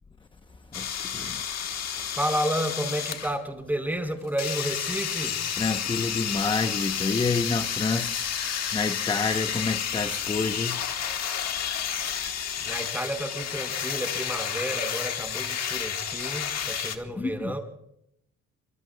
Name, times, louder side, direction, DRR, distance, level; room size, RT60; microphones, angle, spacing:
sound 1, 0.7-3.3 4.4-17.0, left 8 dB, 60° left, 1.5 m, -31 dB
voice 1, 0.8-1.4 5.6-8.3 8.7-10.9 17.2-17.6, left 4 dB, 15° left, 0.7 m, -28 dB
voice 2, 2.1-5.4 12.6-17.6, right 1 dB, 5° right, 4.4 m, -31 dB
25.0 x 23.0 x 2.2 m
cardioid pair, 90°, 30 cm